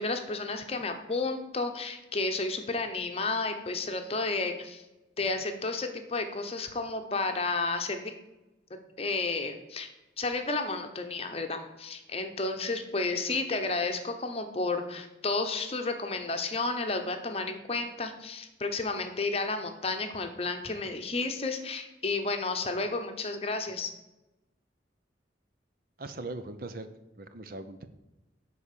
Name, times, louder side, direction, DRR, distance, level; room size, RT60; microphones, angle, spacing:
voice 1, 0.0-4.8 5.2-8.1 9.0-9.9 10.2-23.9, left 3 dB, 30° left, 6 dB, 0.9 m, -32 dB
voice 2, 26.0-26.9 27.2-27.9, right 2 dB, 50° right, 9 dB, 0.6 m, -40 dB
10.0 x 4.2 x 6.8 m, 1.0 s
head